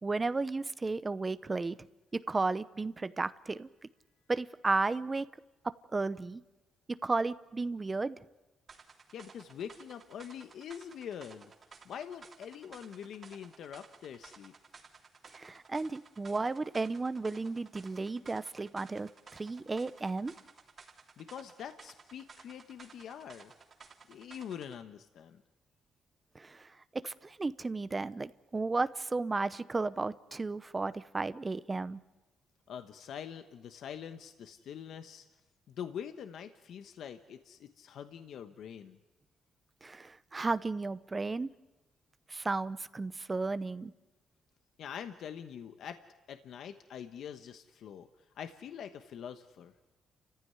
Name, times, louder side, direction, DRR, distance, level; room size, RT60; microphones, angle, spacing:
voice 1, 0.0-1.8 2.1-3.7 4.3-5.3 5.9-6.4 7.0-8.2 15.3-20.3 26.3-26.7 27.0-32.0 39.8-41.5 42.3-43.9, right 3 dB, 25° right, 14 dB, 0.7 m, -33 dB
sound 1, 8.7-24.8, right 5 dB, 45° right, 3.3 m, -56 dB
voice 2, 9.1-11.5 11.8-14.5 21.2-23.5 24.1-25.4 32.7-35.3 35.7-39.0 44.8-46.0 46.3-48.1 48.3-49.7, left 8 dB, 70° left, 8 dB, 1.1 m, -44 dB
29.5 x 15.0 x 9.6 m, 1.1 s
cardioid pair, 90°, 0 cm